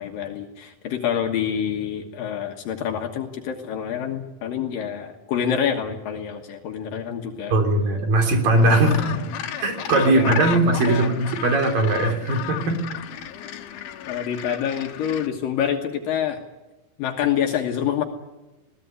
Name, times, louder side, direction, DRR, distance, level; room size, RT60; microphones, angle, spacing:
voice 1, 0.0-7.5 8.9-9.1 10.1-11.2 14.1-16.4 17.0-18.0, left 8 dB, 70° left, 3 dB, 3.1 m, -27 dB
voice 2, 7.5-9.0 9.6-12.8, right 2 dB, 70° right, 4 dB, 5.1 m, -19 dB
Gull seagull, 8.5-15.3, left 11 dB, 90° left, 3.0 m, -33 dB
21.5 x 17.0 x 9.7 m, 1.1 s
omnidirectional pair, 4.2 m